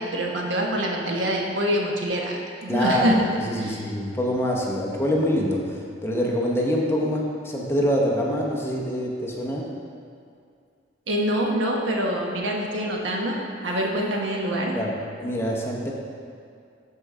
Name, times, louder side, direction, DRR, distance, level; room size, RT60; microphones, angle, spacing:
voice 1, 0.0-3.3 3.6-3.9 11.1-14.8, equal, 90° right, 0 dB, 1.1 m, -25 dB
voice 2, 2.7-3.2 3.4-9.7 14.7-14.9 15.2-15.9, equal, 15° left, -2 dB, 0.9 m, -25 dB
12.0 x 4.8 x 3.7 m, 2.3 s
head